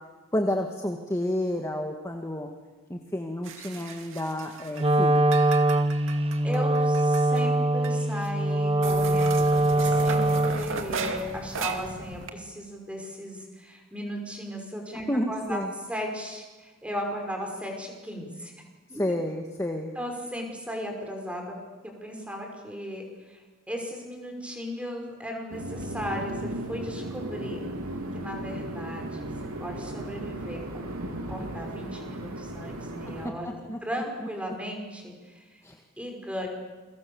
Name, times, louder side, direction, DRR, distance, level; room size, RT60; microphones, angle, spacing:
voice 1, 0.3-2.5 2.9-5.5 15.1-15.7 19.0-19.9 33.4-33.8 35.6-35.8, left 1 dB, 15° left, 2 dB, 1.8 m, -30 dB
sound 1, 3.4-4.9 5.2-7.4 7.8-7.9 8.3-8.4 8.8-12.3, right 3 dB, 65° right, 2.4 m, -35 dB
Wind instrument woodwind instrument, 4.7-10.8, right 1 dB, 25° right, 1.0 m, -23 dB
voice 2, 6.4-15.6 15.9-18.5 18.9-19.1 19.9-21.6 21.8-23.4 23.7-27.7 28.1-29.3 29.6-35.6 36.0-36.5, equal, 5° right, 2 dB, 5.9 m, -36 dB
sound 2, 25.5-33.3, right 1 dB, 90° right, 3.6 m, -36 dB
29.5 x 24.0 x 7.2 m, 1.3 s
head